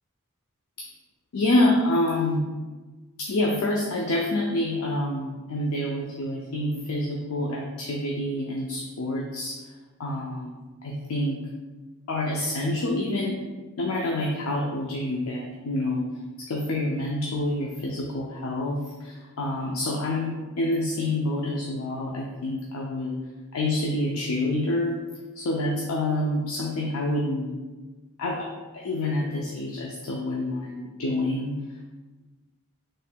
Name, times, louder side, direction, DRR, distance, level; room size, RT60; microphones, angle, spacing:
voice 1, 1.3-2.4 3.2-9.6 10.0-11.4 12.1-13.4 13.8-16.1 16.4-23.2 23.5-25.0 25.4-27.5 28.2-31.6, left 1 dB, 75° left, -1 dB, 0.4 m, -27 dB
4.2 x 3.1 x 2.2 m, 1.3 s
head